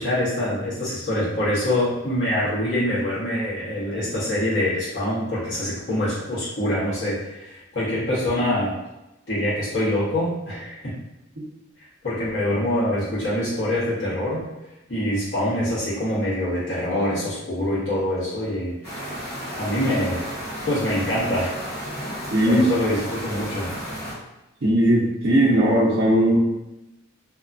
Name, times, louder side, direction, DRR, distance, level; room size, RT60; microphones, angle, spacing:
voice 1, 0.0-8.7 9.3-11.0 12.0-14.5 14.9-19.1 19.6-20.3 20.6-21.5 22.4-23.7, left 1 dB, 65° left, -10 dB, 1.2 m, -25 dB
sound 1, 18.8-24.1, equal, 50° left, 1.2 m, -33 dB
voice 2, 22.3-22.7 24.6-26.4, equal, 55° right, -7 dB, 0.6 m, -18 dB
2.8 x 2.3 x 2.5 m, 0.98 s
head